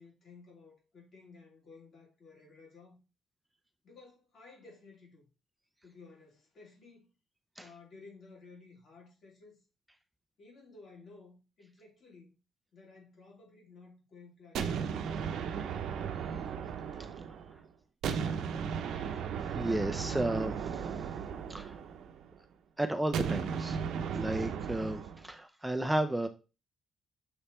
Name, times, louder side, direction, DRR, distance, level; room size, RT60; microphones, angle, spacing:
voice 1, 0.0-3.0 3.8-5.3 5.8-7.1 7.6-9.6 10.4-12.3 12.7-15.1, left 4 dB, 50° left, 3.3 m, -55 dB
sound 1, 14.5-17.6 18.0-22.3 23.1-25.2, right 7 dB, 80° right, 0.7 m, -35 dB
voice 2, 18.9-19.3 19.5-21.1 21.5-21.8 22.8-23.8 24.1-26.3, right 1 dB, 5° right, 0.6 m, -33 dB
7.0 x 3.3 x 4.3 m
cardioid pair, 90°, 0 cm